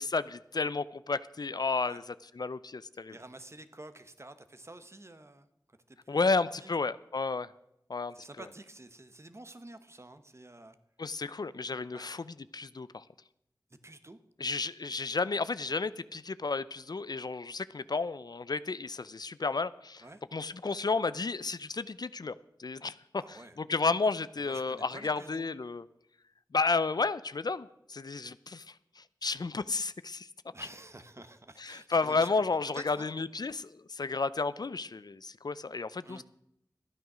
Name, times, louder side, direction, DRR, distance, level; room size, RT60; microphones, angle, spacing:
voice 1, 0.0-2.0 2.4-3.2 6.1-7.5 7.9-8.1 11.0-13.0 14.4-20.0 20.3-22.3 22.6-25.8 26.5-30.3 30.6-30.7 31.6-36.2, left 4 dB, 60° left, 16 dB, 0.4 m, -32 dB
voice 2, 3.1-5.5 5.9-6.2 6.6-6.7 8.1-10.8 11.9-12.1 13.8-14.2 20.0-20.2 23.2-23.6 24.4-25.5 30.5-32.5 32.7-33.1 36.0-36.2, right 2 dB, 35° right, 11 dB, 1.0 m, -49 dB
13.0 x 9.2 x 6.2 m, 0.79 s
wide cardioid pair, 45°, 8 cm